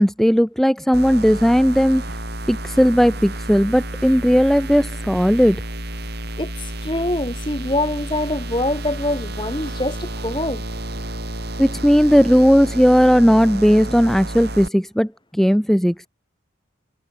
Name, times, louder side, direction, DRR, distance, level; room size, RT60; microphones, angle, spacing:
voice 1, 0.0-2.2 2.5-5.6 11.6-15.9, equal, ahead, 1.8 m, -16 dB
sound 1, 0.9-14.7, right 1 dB, 55° right, 5.3 m, -31 dB
voice 2, 6.8-10.6, left 1 dB, 25° left, 7.0 m, -24 dB
head